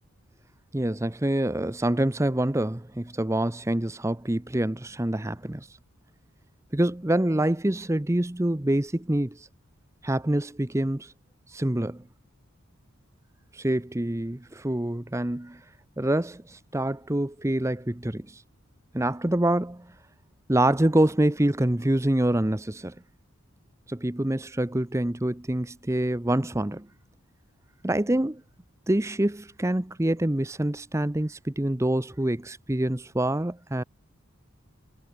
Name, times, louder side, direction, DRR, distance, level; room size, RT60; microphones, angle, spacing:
voice 1, 0.7-5.7 6.7-9.5 10.0-11.1 11.5-12.0 13.5-15.6 16.0-18.4 18.9-19.9 20.5-22.9 23.9-26.9 27.8-28.4 28.9-33.8, right 1 dB, 15° right, 0.6 m, -26 dB
head